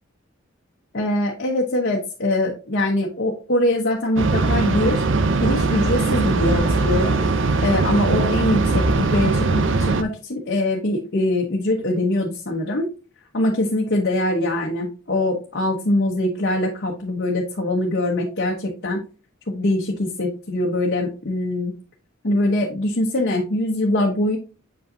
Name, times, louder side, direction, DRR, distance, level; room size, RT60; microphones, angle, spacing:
voice 1, 0.9-5.0 5.4-7.2 7.6-12.9 13.3-19.0 19.5-21.7 22.2-24.4, left 1 dB, 55° left, 0 dB, 1.1 m, -23 dB
sound 1, 4.2-10.0, right 3 dB, 65° right, 0.7 m, -20 dB
7.3 x 5.3 x 2.7 m, 0.33 s
head